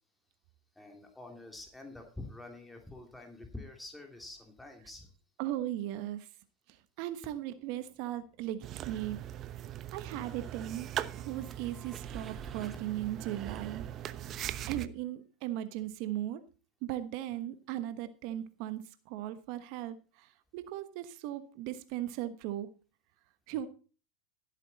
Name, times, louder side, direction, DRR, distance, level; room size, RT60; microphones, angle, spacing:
voice 1, 0.7-5.1 14.3-14.6, left 2 dB, 5° left, 3 dB, 2.9 m, -47 dB
voice 2, 5.4-6.3 6.7-9.2 9.9-10.9 11.1-13.8 14.4-16.4 16.8-22.7 23.5-23.7, right 13 dB, 60° right, 11 dB, 1.2 m, -38 dB
sound 1, 7.4-7.5 7.8-12.8, right 3 dB, 20° right, 1.2 m, -54 dB
sound 2, 8.6-14.9, right 11 dB, 40° right, 0.9 m, -40 dB
15.0 x 8.2 x 4.1 m, 0.36 s
hypercardioid pair, 105°, 0 cm